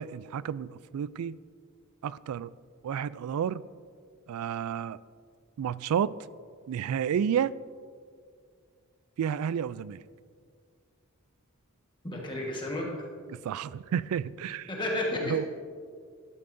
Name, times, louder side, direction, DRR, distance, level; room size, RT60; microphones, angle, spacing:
voice 1, 0.0-1.4 2.0-2.5 2.8-3.6 4.3-5.0 5.6-6.2 6.7-7.5 9.2-10.0 13.3-14.7 15.2-15.5, right 8 dB, 80° right, 0.3 m, -31 dB
voice 2, 12.0-13.1 14.7-15.5, left 1 dB, 20° left, 1.4 m, -32 dB
14.0 x 12.0 x 2.6 m
head